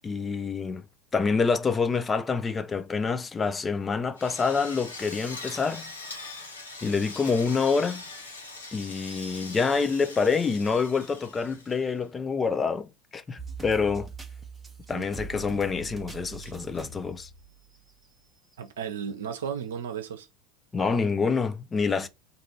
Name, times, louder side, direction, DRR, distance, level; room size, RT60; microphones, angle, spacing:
voice 1, 0.0-0.8 1.1-5.9 6.8-8.0 8.7-14.1 14.9-17.3 20.7-22.1, left 5 dB, 20° left, 0.4 m, -27 dB
Drill, 4.2-12.0, left 3 dB, 80° left, 0.8 m, -42 dB
sound 1, 13.4-18.1 18.5-18.6 19.6-19.7, right 5 dB, 10° right, 0.8 m, -42 dB
voice 2, 18.6-20.3 21.9-22.1, right 7 dB, 70° right, 0.7 m, -35 dB
2.6 x 2.5 x 3.7 m
figure-of-eight pair, 80°, 0 cm